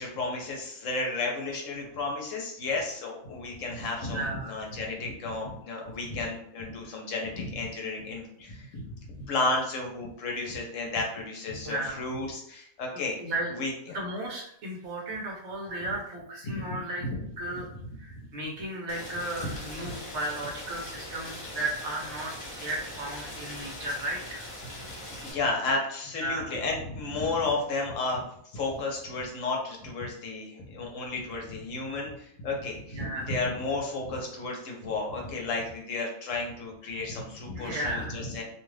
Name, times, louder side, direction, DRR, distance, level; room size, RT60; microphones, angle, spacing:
voice 1, 0.0-9.0 9.3-13.2 13.6-14.0 16.4-16.8 17.1-17.2 19.4-19.5 19.8-19.9 25.2-28.2 28.5-38.4, left 3 dB, 70° left, 0 dB, 1.0 m, -32 dB
voice 2, 4.1-4.5 11.6-12.1 12.9-13.5 13.9-17.1 17.4-17.7 18.0-22.3 22.6-24.4 26.2-26.5 32.9-33.3 37.5-38.2, right 1 dB, 65° right, -1 dB, 1.0 m, -34 dB
Rain, 18.9-25.3, left 1 dB, 30° left, 0.7 m, -41 dB
2.6 x 2.4 x 3.2 m, 0.69 s
omnidirectional pair, 1.4 m